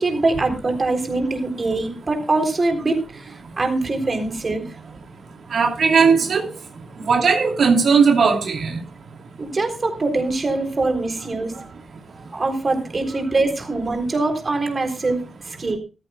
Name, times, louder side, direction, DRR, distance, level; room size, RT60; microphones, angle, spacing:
voice 1, 0.0-4.7 9.4-11.7 12.3-15.8, right 2 dB, 35° right, 4 dB, 3.7 m, -23 dB
voice 2, 5.5-6.5 7.1-8.8, right 5 dB, 75° right, 2 dB, 2.7 m, -17 dB
14.5 x 14.5 x 2.3 m, 0.32 s
cardioid pair, 95°, 0 cm